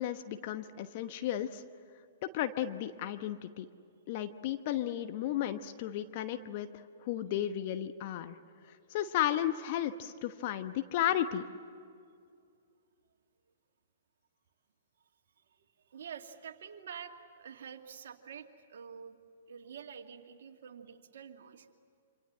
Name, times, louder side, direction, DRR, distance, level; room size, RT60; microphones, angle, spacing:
voice 1, 0.0-1.6 2.2-3.7 4.1-8.3 8.7-11.5, left 11 dB, 45° left, 9 dB, 1.1 m, -34 dB
voice 2, 15.5-19.2 19.5-21.7, right 7 dB, 65° right, 3 dB, 2.3 m, -48 dB
27.5 x 26.5 x 7.7 m, 2.4 s
hypercardioid pair, 120°, 0 cm